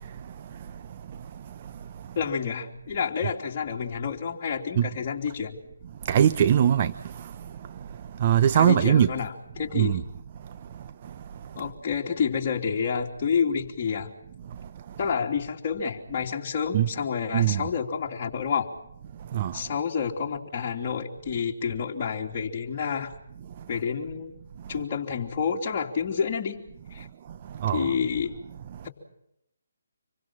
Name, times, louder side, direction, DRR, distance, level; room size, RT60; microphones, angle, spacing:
voice 1, 2.1-5.6 8.6-10.0 11.5-14.1 15.0-18.7 19.5-23.1 23.7-24.4 24.7-26.6 26.9-27.1 27.7-28.4, left 6 dB, 35° left, 3.1 m, -29 dB
voice 2, 6.1-6.9 8.2-9.1 9.8-10.0 16.7-16.9 17.3-17.6 19.3-19.5 27.6-27.9, right 10 dB, 35° right, 0.8 m, -20 dB
26.5 x 23.5 x 5.8 m
figure-of-eight pair, 150°, 0 cm